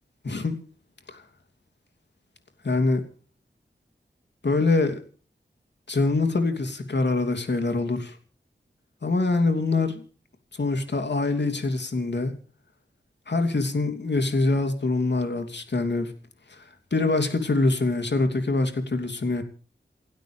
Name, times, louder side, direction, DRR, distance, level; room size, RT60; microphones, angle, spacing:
voice 1, 0.2-0.6 1.1-1.2 2.6-3.0 4.4-5.0 5.9-8.2 9.0-10.0 10.6-12.3 13.3-16.1 16.5-16.6 16.9-19.4, left 3 dB, 70° left, 3.0 m, -24 dB
28.5 x 12.5 x 3.4 m
wide cardioid pair, 80°, 19 cm